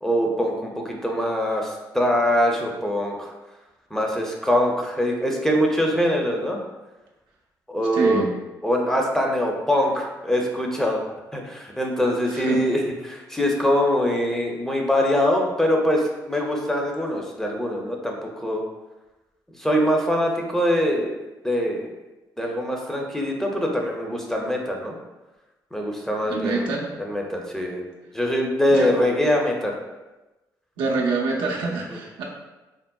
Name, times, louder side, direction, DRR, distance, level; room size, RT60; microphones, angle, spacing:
voice 1, 0.0-3.3 3.9-6.6 7.7-8.2 8.6-11.0 11.3-18.6 19.6-21.2 21.4-21.9 22.4-25.0 25.7-26.7 27.0-27.9 28.1-29.7, equal, 5° left, 0 dB, 0.5 m, -23 dB
voice 2, 7.9-8.3 12.3-12.6 26.2-26.9 28.7-28.9 30.8-32.2, right 3 dB, 85° right, -1 dB, 0.5 m, -26 dB
3.6 x 2.0 x 2.2 m, 1.1 s
supercardioid pair, 65°, 8 cm